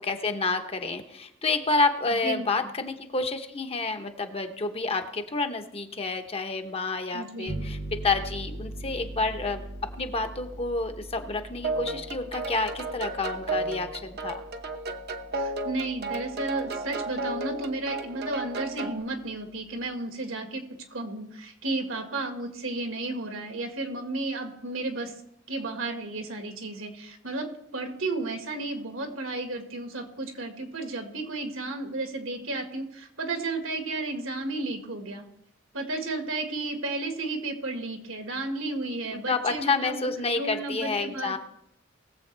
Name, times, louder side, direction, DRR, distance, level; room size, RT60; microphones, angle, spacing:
voice 1, 0.0-14.4 39.1-41.4, left 3 dB, 30° left, 7 dB, 0.9 m, -29 dB
voice 2, 2.1-2.5 7.1-7.7 15.3-20.6 20.9-25.1 25.5-35.3 35.7-40.1 40.4-41.4, right 2 dB, 75° right, 4 dB, 1.8 m, -33 dB
sound 1, 7.5-16.8, right 1 dB, 20° right, 0.6 m, -41 dB
sound 2, 11.6-19.0, right 2 dB, 55° right, 0.9 m, -33 dB
20.0 x 7.6 x 3.4 m, 0.79 s
head